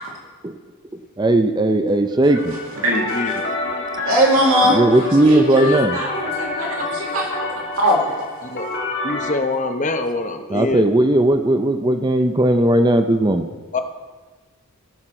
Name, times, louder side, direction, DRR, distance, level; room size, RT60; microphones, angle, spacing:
voice 1, 1.2-2.6 4.7-6.0 10.5-13.5, right 1 dB, 20° right, 7 dB, 0.5 m, -17 dB
sound 1, 2.3-9.3, left 3 dB, 55° left, 1.7 m, -28 dB
voice 2, 2.8-3.2 4.0-4.8 5.3-8.2, equal, 75° right, -1 dB, 2.3 m, -20 dB
voice 3, 9.0-10.8 13.7-13.8, left 3 dB, 35° left, 7 dB, 0.8 m, -24 dB
17.5 x 6.5 x 4.4 m, 1.4 s
head